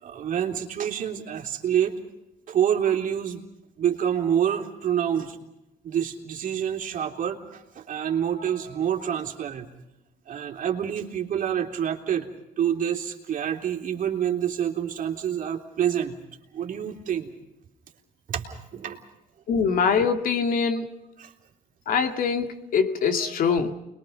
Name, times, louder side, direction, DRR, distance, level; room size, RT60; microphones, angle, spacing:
voice 1, 0.0-2.0 2.5-3.4 3.8-5.4 5.8-9.7 10.3-12.3 12.6-16.1 16.5-17.3 18.3-19.0 21.2-21.3 23.0-23.3, right 9 dB, 50° right, 3.4 m, -27 dB
voice 2, 19.5-20.9 21.9-23.7, left 6 dB, 55° left, 2.4 m, -23 dB
29.5 x 22.0 x 5.3 m
cardioid pair, 110°, 17 cm